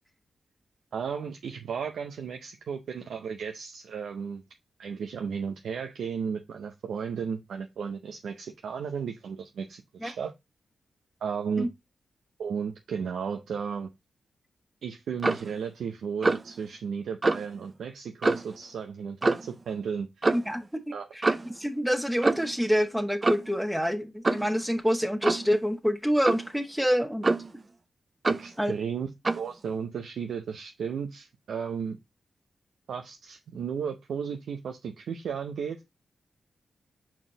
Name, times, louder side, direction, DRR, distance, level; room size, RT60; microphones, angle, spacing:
voice 1, 0.9-4.4 4.8-10.3 11.2-11.7 12.4-13.9 14.8-20.1 20.9-21.1 28.3-29.1 29.3-32.0 32.9-35.8, right 6 dB, 80° right, 0.6 m, -34 dB
Clock, 15.2-15.5 16.2-16.5 17.2-17.5 18.2-18.6 19.2-19.5 20.2-20.5 21.2-21.5 22.2-22.6 23.2-23.6 24.2-24.5 25.2-25.5 26.2-26.5 27.2-27.6 28.2-28.5 29.2-29.5, right 3 dB, 40° right, 0.6 m, -26 dB
voice 2, 20.3-20.8 21.1-27.4 28.6-28.7, equal, 5° right, 1.3 m, -27 dB
5.9 x 4.3 x 3.8 m
supercardioid pair, 45°, 0 cm